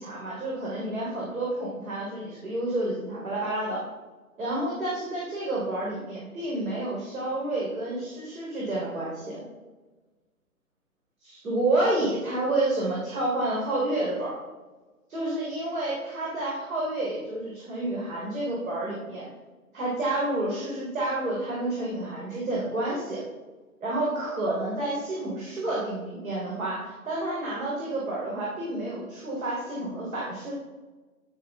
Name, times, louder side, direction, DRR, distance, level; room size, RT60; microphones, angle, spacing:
voice 1, 0.0-3.8 4.4-9.4 11.2-14.4 15.1-19.3 19.7-23.2 23.8-30.5, right 2 dB, 65° right, -4 dB, 3.5 m, -29 dB
15.5 x 6.3 x 3.5 m, 1.2 s
figure-of-eight pair, 130°, 44 cm